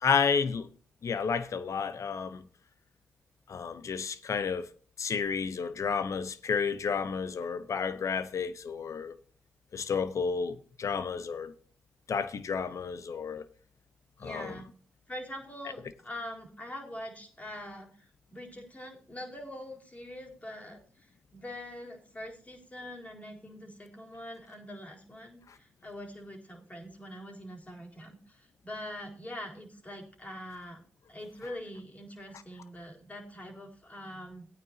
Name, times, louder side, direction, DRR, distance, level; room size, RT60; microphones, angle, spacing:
voice 1, 0.0-0.7 1.0-2.4 3.5-4.7 5.0-9.2 9.7-11.5 12.1-13.4 14.2-14.5, left 6 dB, 60° left, 1.0 m, -31 dB
voice 2, 14.2-14.7 15.1-30.8 31.1-34.5, left 1 dB, 25° left, 4.1 m, -44 dB
17.5 x 9.0 x 2.9 m
hypercardioid pair, 40°, 6 cm